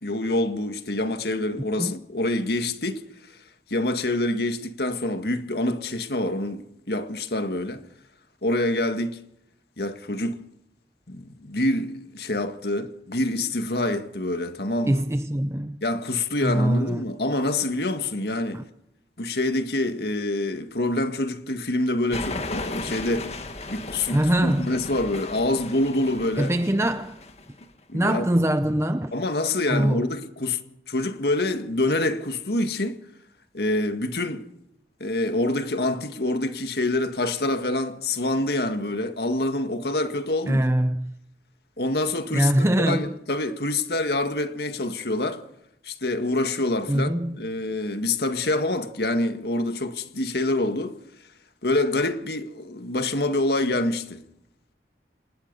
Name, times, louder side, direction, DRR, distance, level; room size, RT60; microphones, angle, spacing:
voice 1, 0.0-3.0 3.7-7.8 8.4-9.2 9.8-10.4 11.1-15.0 15.8-18.6 19.2-23.3 23.7-26.5 27.9-28.2 29.1-30.6 30.9-33.0 33.5-34.5 35.0-40.6 41.8-45.4 45.8-51.0 51.6-54.2, left 2 dB, 65° left, 1.9 m, -26 dB
voice 2, 14.9-15.8 16.4-17.0 18.5-18.6 24.1-24.7 26.4-27.2 27.9-29.1 29.7-30.0 40.5-41.1 42.3-43.1 46.9-47.4, right 1 dB, 15° right, 0.7 m, -23 dB
sound 1, 22.1-27.6, left 2 dB, 35° left, 2.0 m, -36 dB
26.0 x 20.0 x 5.5 m
head